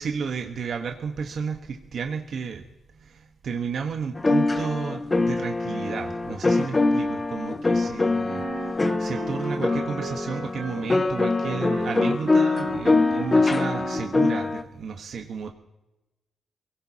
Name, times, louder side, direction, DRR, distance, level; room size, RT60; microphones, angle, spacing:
voice 1, 0.0-2.6 2.9-15.5, right 6 dB, 65° right, 3 dB, 1.2 m, -32 dB
sound 1, 4.2-14.6, left 3 dB, 30° left, 0.9 m, -24 dB
Wind instrument woodwind instrument, 8.3-14.3, right 6 dB, 90° right, 3.5 m, -37 dB
23.5 x 17.0 x 2.9 m, 0.98 s
cardioid pair, 65°, 0 cm